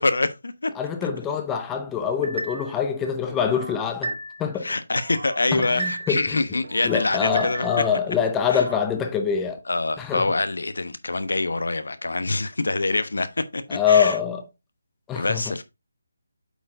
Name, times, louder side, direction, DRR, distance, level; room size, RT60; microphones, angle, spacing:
voice 1, 0.0-0.7 4.6-7.7 8.5-8.6 9.7-14.2 15.2-15.6, left 2 dB, 85° left, 1.0 m, -25 dB
voice 2, 0.7-4.7 5.5-6.4 6.8-9.6 10.0-10.3 13.7-14.4 15.1-15.5, left 7 dB, 10° left, 0.7 m, -24 dB
sound 1, 2.2-2.8 3.3-4.5 4.9-6.2 6.6-8.0 8.4-8.9, right 2 dB, 75° right, 1.6 m, -35 dB
8.3 x 4.5 x 3.7 m
figure-of-eight pair, 165°, 0 cm